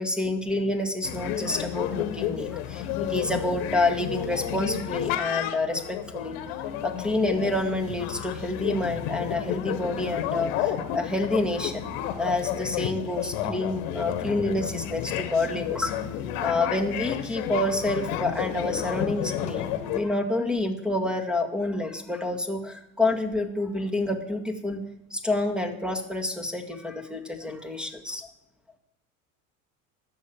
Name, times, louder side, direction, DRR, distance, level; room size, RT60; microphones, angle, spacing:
voice 1, 0.0-2.8 3.1-6.4 6.8-11.8 12.2-15.9 16.4-24.8 25.1-28.3, left 2 dB, ahead, 4 dB, 2.0 m, -28 dB
sound 1, 1.0-20.0, left 10 dB, 70° left, 1.5 m, -31 dB
10.5 x 7.1 x 8.6 m, 0.79 s
supercardioid pair, 95°, 43 cm